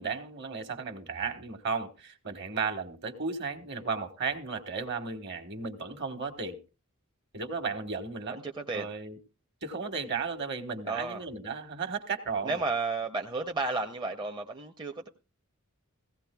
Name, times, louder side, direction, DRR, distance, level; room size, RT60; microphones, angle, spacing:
voice 1, 0.0-6.6 7.3-8.4 8.7-9.2 9.6-12.6, right 5 dB, 50° right, 1.4 m, -34 dB
voice 2, 8.3-8.9 10.9-11.2 12.4-15.1, right 3 dB, 20° right, 0.6 m, -32 dB
16.5 x 16.0 x 2.3 m
head